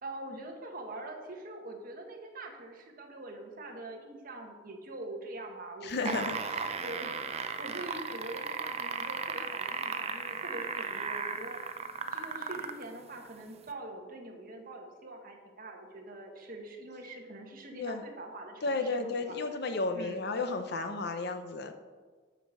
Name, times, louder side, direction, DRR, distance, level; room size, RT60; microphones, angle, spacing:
voice 1, 0.0-6.3 6.8-11.6 12.1-19.6 19.9-20.2, right 2 dB, 50° right, 2 dB, 1.4 m, -44 dB
voice 2, 5.8-6.7 17.7-18.0 18.6-21.7, left 3 dB, 60° left, 7 dB, 0.8 m, -33 dB
sound 1, 5.9-12.8 13.7-13.8, right 5 dB, 35° right, 0.5 m, -35 dB
7.6 x 5.2 x 6.7 m, 1.5 s
head